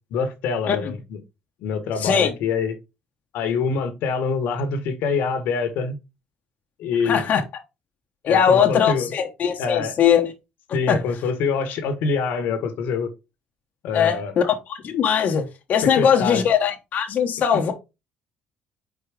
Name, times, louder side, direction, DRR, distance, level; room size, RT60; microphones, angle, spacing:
voice 1, 0.1-1.2 1.6-2.8 3.3-5.9 6.8-7.2 8.3-9.1 9.6-9.9 10.7-13.1 13.8-14.4 15.8-16.4, left 5 dB, 75° left, 1.3 m, -25 dB
voice 2, 2.0-2.3 7.0-7.4 8.2-10.3 10.9-11.0 13.9-17.7, left 8 dB, 55° left, 1.1 m, -20 dB
4.9 x 4.5 x 4.9 m
supercardioid pair, 80°, 3 cm